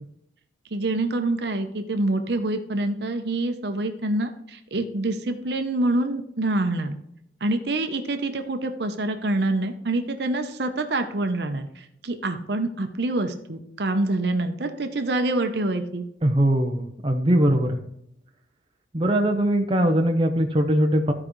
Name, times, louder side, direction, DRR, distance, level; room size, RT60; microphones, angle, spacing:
voice 1, 0.7-7.0 7.4-16.0, right 2 dB, 65° right, 6 dB, 0.8 m, -26 dB
voice 2, 16.2-17.8 18.9-21.1, right 1 dB, 30° right, 3 dB, 0.7 m, -21 dB
14.0 x 4.9 x 3.1 m, 0.77 s
head